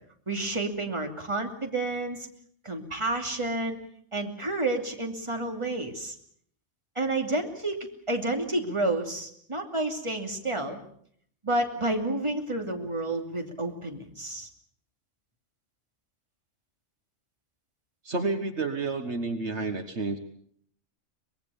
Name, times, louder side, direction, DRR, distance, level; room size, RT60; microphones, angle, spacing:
voice 1, 0.3-2.3 2.6-3.8 4.1-6.2 6.9-10.8 11.4-14.5, right 2 dB, 25° right, 4 dB, 2.8 m, -30 dB
voice 2, 18.0-20.2, right 3 dB, 65° right, 8 dB, 1.7 m, -30 dB
24.0 x 20.5 x 7.1 m, 0.62 s
omnidirectional pair, 1.3 m